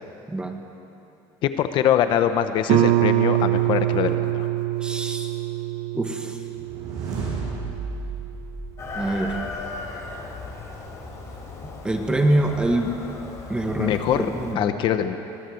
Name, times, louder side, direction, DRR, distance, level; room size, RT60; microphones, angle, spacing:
voice 1, 1.4-4.5 13.8-15.2, left 10 dB, 50° left, 9 dB, 1.1 m, -23 dB
Guitar, 2.7-8.1, right 15 dB, 65° right, 0.9 m, -24 dB
voice 2, 4.8-5.3 5.9-6.4 8.9-9.4 11.8-12.9 13.5-14.7, right 1 dB, 10° right, 4 dB, 1.6 m, -24 dB
sound 1, 6.5-9.8, right 4 dB, 35° right, 7.6 m, -33 dB
Chicken rooster, 8.8-14.5, left 3 dB, 30° left, 4.3 m, -36 dB
23.5 x 18.5 x 7.9 m, 2.9 s
cardioid pair, 155°, 10 cm